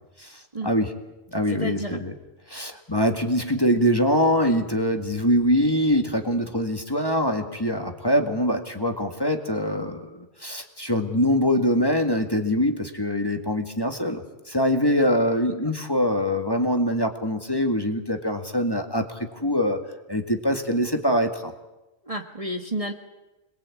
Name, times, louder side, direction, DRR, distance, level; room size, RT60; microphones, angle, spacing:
voice 1, 0.2-0.9 1.3-2.1 2.5-14.2 14.5-19.8 20.1-21.5, equal, 15° left, 4 dB, 1.9 m, -23 dB
voice 2, 1.5-2.0 22.0-22.9, right 1 dB, 25° right, 3 dB, 1.5 m, -31 dB
27.0 x 21.0 x 8.5 m, 1.0 s
omnidirectional pair, 1.4 m